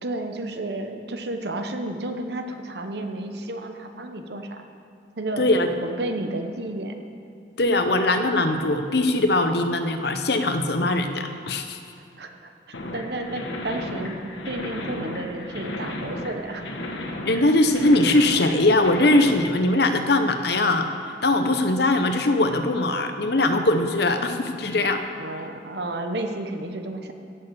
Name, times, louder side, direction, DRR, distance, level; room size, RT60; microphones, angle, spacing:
voice 1, 0.0-4.6 5.2-5.4 5.8-6.9 12.2-12.5 12.9-16.6 25.2-27.1, right 1 dB, 60° right, 6 dB, 1.0 m, -32 dB
voice 2, 5.4-5.7 7.6-11.8 17.3-20.9 21.2-25.0, left 2 dB, 60° left, 7 dB, 0.9 m, -21 dB
sound 1, 12.7-19.3, left 1 dB, 80° left, 1.5 m, -34 dB
16.5 x 6.8 x 7.0 m, 2.6 s
head